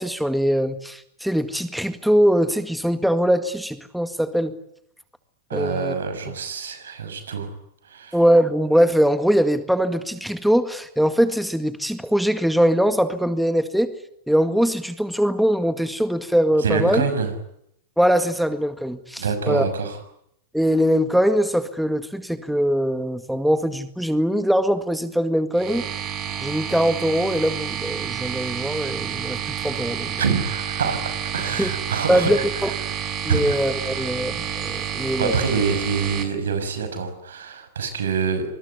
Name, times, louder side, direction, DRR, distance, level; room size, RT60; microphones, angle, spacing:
voice 1, 0.0-4.5 5.5-5.9 8.1-13.9 14.3-17.0 18.0-19.6 20.5-25.8 26.4-30.2 31.6-31.7 32.1-32.7 33.2-35.3, equal, ahead, 9 dB, 1.9 m, -21 dB
voice 2, 5.5-7.5 7.8-8.2 16.6-17.3 19.2-20.0 30.2-32.4 33.3-34.0 35.2-38.4, right 5 dB, 90° right, 9 dB, 6.4 m, -26 dB
sound 1, 25.5-36.2, right 9 dB, 40° right, 6.1 m, -29 dB
26.0 x 20.5 x 9.7 m, 0.75 s
hypercardioid pair, 115°, 0 cm